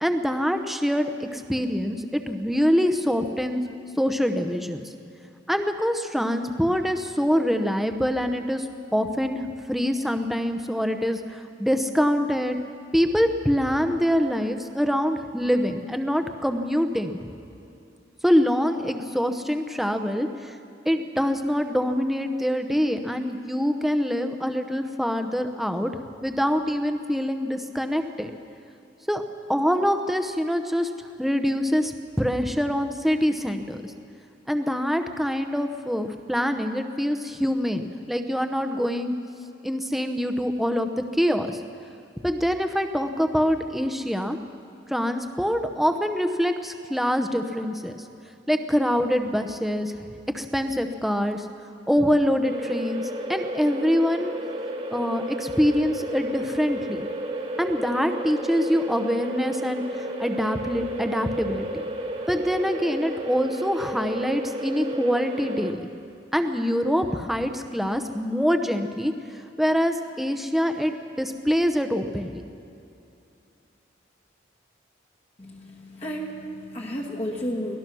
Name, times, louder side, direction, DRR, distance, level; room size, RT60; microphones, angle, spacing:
voice 1, 0.0-3.6 4.0-4.9 5.5-8.7 8.9-12.6 12.9-17.2 18.2-20.5 20.8-25.9 26.2-28.3 29.1-29.2 29.5-30.9 31.2-31.9 32.2-33.9 34.5-39.1 39.6-40.9 41.2-41.6 42.2-44.4 44.9-48.0 48.5-49.9 50.3-51.5 51.9-54.3 54.9-57.1 57.6-61.7 62.3-65.8 66.3-69.1 69.6-72.4, equal, ahead, 6 dB, 0.8 m, -25 dB
sound 1, 52.4-65.7, right 1 dB, 30° right, 1.6 m, -32 dB
voice 2, 75.4-77.8, equal, 30° left, -2 dB, 1.4 m, -32 dB
23.5 x 18.0 x 6.2 m, 2.6 s
head